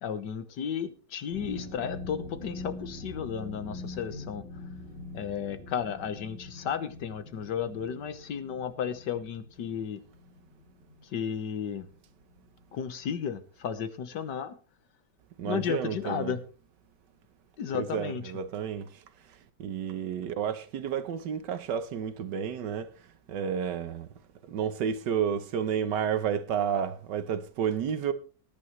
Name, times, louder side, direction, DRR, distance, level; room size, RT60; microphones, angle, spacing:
voice 1, 0.0-4.4 5.1-10.0 11.1-11.9 12.7-14.5 15.4-16.4 17.6-18.2, left 8 dB, 90° left, 1.8 m, -33 dB
sound 1, 1.3-12.0 12.3-12.6 13.0-13.1, left 2 dB, 35° right, 2.4 m, -43 dB
voice 2, 15.4-16.3 17.7-19.0 19.6-22.9 23.3-24.1 24.5-28.1, right 8 dB, 80° right, 1.5 m, -31 dB
19.0 x 10.5 x 3.2 m
omnidirectional pair, 1.8 m